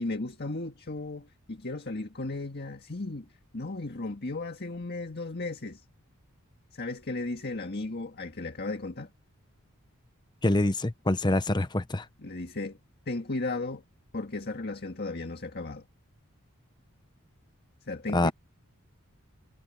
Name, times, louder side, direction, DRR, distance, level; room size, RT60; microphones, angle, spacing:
voice 1, 0.0-3.3 3.5-5.9 6.7-9.1 12.2-12.8 13.1-13.8 14.1-15.8 17.8-18.3, left 2 dB, 45° left, 1.8 m, -35 dB
voice 2, 10.4-12.1 18.1-18.3, left 2 dB, 20° left, 0.7 m, -25 dB
head